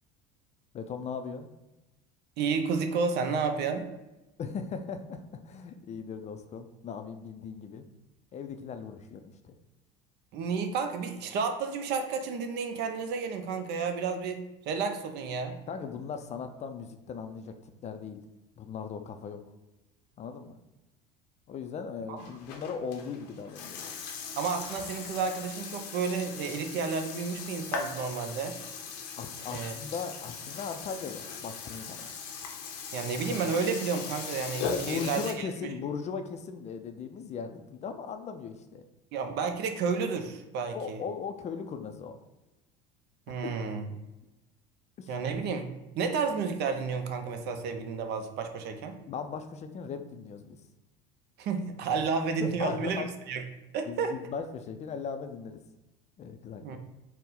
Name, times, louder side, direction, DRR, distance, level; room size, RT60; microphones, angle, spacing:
voice 1, 0.7-1.5 4.4-7.8 8.3-9.5 15.7-18.2 18.6-19.4 20.2-20.6 21.5-23.9 29.2-32.1 34.6-38.8 40.7-42.2 43.4-43.5 45.0-45.1 49.1-50.6 52.4-53.1 53.9-55.6 56.2-56.8, left 6 dB, 35° left, 7 dB, 0.4 m, -38 dB
voice 2, 2.4-3.9 10.3-15.6 22.1-22.2 24.4-28.6 29.5-29.7 32.9-35.7 39.1-41.0 43.3-43.9 45.1-45.7 46.0-49.0 51.4-53.4 53.7-54.1 56.6-56.8, right 5 dB, 55° right, 7 dB, 0.6 m, -31 dB
Burping eructation, 22.2-35.3, left 5 dB, 85° left, 0.7 m, -39 dB
4.1 x 2.1 x 3.8 m, 1.0 s
supercardioid pair, 90°, 20 cm